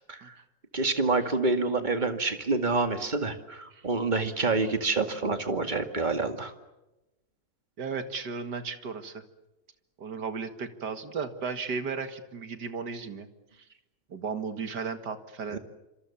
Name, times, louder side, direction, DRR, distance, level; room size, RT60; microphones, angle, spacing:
voice 1, 0.7-6.5 15.5-15.6, right 3 dB, 25° right, 7 dB, 2.2 m, -27 dB
voice 2, 7.8-9.2 10.0-13.3 14.1-15.6, right 5 dB, 65° right, 9 dB, 2.5 m, -35 dB
27.5 x 26.5 x 7.2 m, 0.98 s
omnidirectional pair, 1.9 m